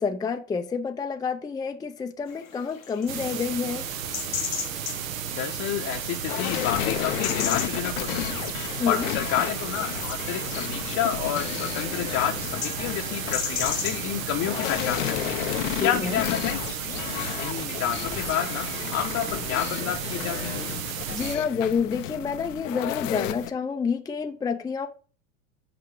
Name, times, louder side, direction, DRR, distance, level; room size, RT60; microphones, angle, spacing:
voice 1, 0.0-3.9 8.8-9.0 15.6-16.2 21.1-24.9, left 5 dB, 10° left, 0.5 m, -28 dB
sound 1, 2.3-15.3, left 8 dB, 90° left, 1.3 m, -37 dB
sound 2, 3.1-21.4, right 8 dB, 80° right, 1.1 m, -33 dB
voice 2, 5.3-8.5 8.9-15.4 15.8-16.8 17.4-20.6, left 10 dB, 45° left, 0.9 m, -30 dB
sound 3, 6.3-23.5, left 13 dB, 70° left, 0.8 m, -32 dB
6.0 x 4.7 x 4.7 m
hypercardioid pair, 100°, 40 cm